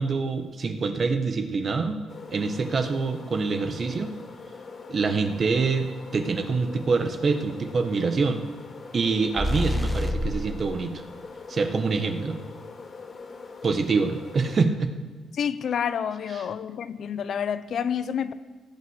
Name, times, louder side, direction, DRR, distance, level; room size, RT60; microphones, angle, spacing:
voice 1, 0.0-2.0 2.3-4.1 4.9-8.5 8.9-11.0 11.5-12.4 13.6-14.9 16.4-16.5, right 4 dB, 45° right, 1.5 m, -25 dB
sound 1, 2.1-14.6, left 4 dB, 45° left, 2.8 m, -43 dB
sound 2, 9.4-10.6, left 1 dB, 10° left, 1.1 m, -26 dB
voice 2, 15.3-18.3, left 8 dB, 60° left, 0.7 m, -28 dB
16.5 x 8.8 x 8.3 m
cardioid pair, 90°, 0 cm